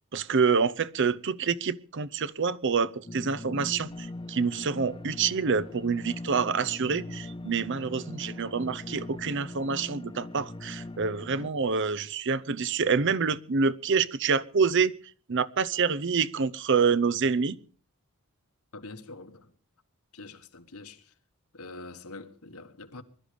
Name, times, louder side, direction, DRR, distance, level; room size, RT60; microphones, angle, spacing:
voice 1, 0.1-14.9 15.3-17.6, right 5 dB, 55° right, 0.7 m, -27 dB
sound 1, 3.1-11.5, left 2 dB, 20° left, 0.7 m, -41 dB
voice 2, 18.7-19.5 20.1-21.1 21.5-23.0, left 3 dB, 85° left, 1.5 m, -45 dB
21.0 x 12.0 x 5.1 m
head